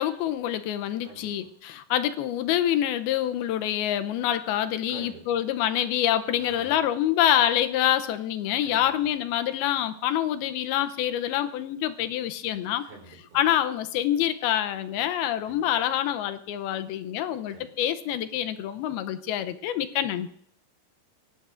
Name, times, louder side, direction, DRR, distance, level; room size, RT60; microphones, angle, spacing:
voice 1, 0.0-12.8 13.3-20.3, left 11 dB, 85° left, 10 dB, 2.7 m, -26 dB
voice 2, 1.0-1.5 4.9-5.4 6.4-6.8 8.6-8.9 12.8-13.4 15.4-15.7 17.5-17.7, right 3 dB, 65° right, -1 dB, 5.6 m, -47 dB
23.5 x 17.5 x 2.5 m, 0.65 s
omnidirectional pair, 4.3 m